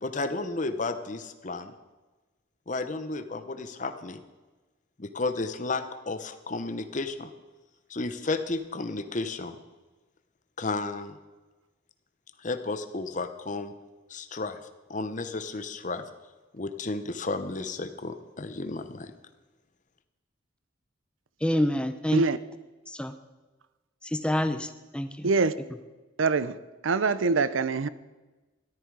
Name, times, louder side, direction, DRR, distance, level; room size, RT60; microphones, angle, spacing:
voice 1, 0.0-1.7 2.7-4.2 5.0-7.3 7.9-9.6 10.6-11.1 12.4-13.7 14.1-14.6 14.9-16.0 16.5-19.1, left 3 dB, 40° left, 0.8 m, -32 dB
voice 2, 21.4-22.2 22.9-23.1 24.0-25.3, left 1 dB, 5° left, 0.6 m, -27 dB
voice 3, 25.2-25.5 26.2-26.6 26.8-27.9, right 4 dB, 85° right, 0.6 m, -24 dB
14.0 x 12.0 x 4.8 m
head